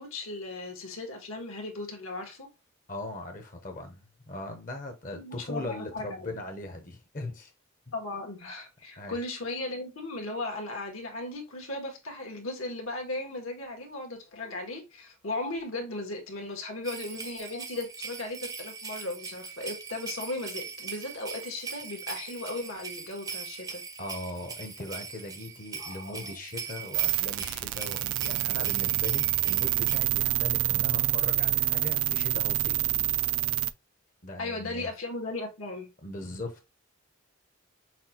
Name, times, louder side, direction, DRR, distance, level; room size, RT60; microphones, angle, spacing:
voice 1, 0.0-2.5 5.1-6.3 7.9-23.8 25.8-26.2 34.4-35.9, left 2 dB, 80° left, 1.4 m, -37 dB
voice 2, 2.9-7.5 9.0-9.1 24.0-32.8 34.2-34.9 36.0-36.7, left 2 dB, 40° left, 0.7 m, -39 dB
sound 1, 16.8-30.0, right 5 dB, 15° right, 0.5 m, -41 dB
sound 2, 26.9-33.7, right 15 dB, 80° right, 0.3 m, -27 dB
5.8 x 2.3 x 2.8 m
head